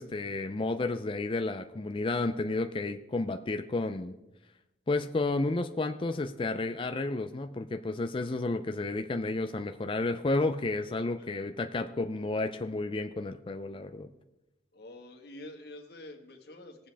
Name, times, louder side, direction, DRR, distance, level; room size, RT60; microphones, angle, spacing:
voice 1, 0.0-4.1 4.9-14.1, left 2 dB, 30° left, 7 dB, 0.4 m, -31 dB
voice 2, 14.7-16.9, left 1 dB, 60° left, 3 dB, 1.6 m, -47 dB
19.5 x 7.4 x 3.4 m, 0.97 s
head